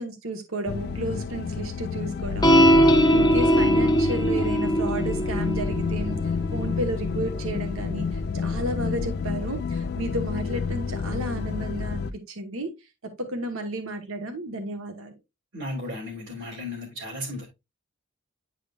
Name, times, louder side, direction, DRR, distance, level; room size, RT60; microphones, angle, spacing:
voice 1, 0.0-6.2 6.5-12.7 13.3-15.1, right 1 dB, 70° right, 1.4 m, -32 dB
sound 1, 0.7-12.1, left 5 dB, 50° left, 0.3 m, -30 dB
sound 2, 2.4-9.1, equal, 20° left, 0.8 m, -22 dB
voice 2, 15.5-17.5, left 1 dB, 55° right, 2.6 m, -34 dB
9.9 x 4.9 x 2.4 m
head